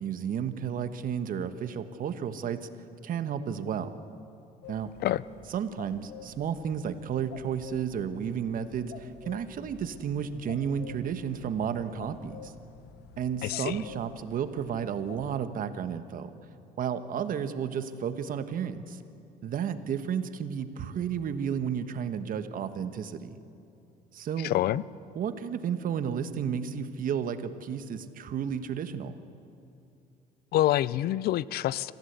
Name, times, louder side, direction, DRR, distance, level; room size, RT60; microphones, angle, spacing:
voice 1, 0.0-2.7 3.0-3.9 4.7-4.9 5.5-12.5 13.2-16.3 16.8-19.0 19.4-23.4 24.1-24.5 25.1-29.1, right 8 dB, 55° right, 10 dB, 1.3 m, -32 dB
sound 1, 4.6-15.4, left 7 dB, 85° left, 1.3 m, -49 dB
voice 2, 13.4-13.8 24.4-24.8 30.5-31.9, left 14 dB, 65° left, 20 dB, 0.5 m, -26 dB
25.5 x 15.0 x 8.2 m, 2.7 s
cardioid pair, 110°, 17 cm